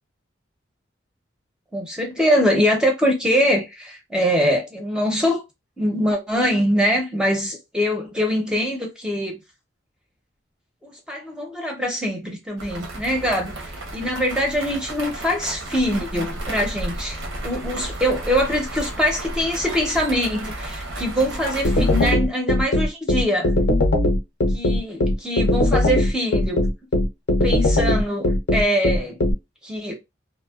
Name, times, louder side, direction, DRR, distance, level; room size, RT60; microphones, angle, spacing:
voice 1, 1.7-5.4 5.8-9.4 10.8-23.5 24.5-26.6 27.4-29.2 29.6-29.9, equal, 5° right, 0.6 m, -23 dB
sound 1, 12.6-22.1, right 1 dB, 85° right, 0.8 m, -33 dB
sound 2, 21.6-29.3, left 1 dB, 60° left, 0.5 m, -19 dB
2.7 x 2.0 x 2.3 m
head